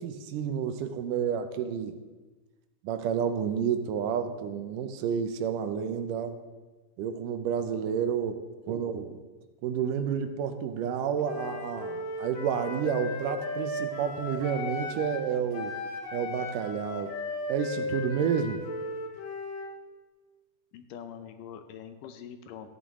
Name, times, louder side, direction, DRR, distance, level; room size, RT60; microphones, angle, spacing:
voice 1, 0.0-2.0 2.8-6.4 7.0-9.2 9.6-15.7 16.1-17.2 17.5-18.6, right 7 dB, 80° right, 8 dB, 2.2 m, -30 dB
Wind instrument woodwind instrument, 11.2-15.3 15.5-19.7, left 2 dB, 60° left, 2.1 m, -36 dB
voice 2, 20.7-22.7, left 8 dB, 80° left, 8 dB, 2.2 m, -44 dB
15.0 x 10.0 x 3.6 m, 1.2 s
omnidirectional pair, 4.0 m